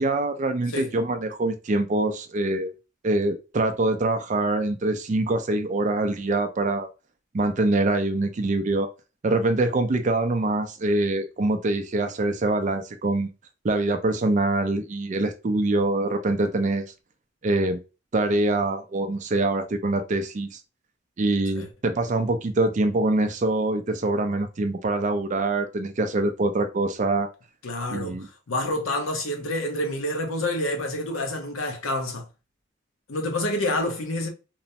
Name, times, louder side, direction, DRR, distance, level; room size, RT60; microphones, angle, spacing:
voice 1, 0.0-2.7 3.0-6.9 7.3-8.9 9.2-13.3 13.6-16.9 17.4-17.8 18.1-20.6 21.2-27.3 27.9-28.3, right 2 dB, 35° right, 0.4 m, -24 dB
voice 2, 27.6-32.3 33.1-34.3, left 1 dB, 85° left, 0.8 m, -28 dB
3.0 x 2.1 x 2.6 m
head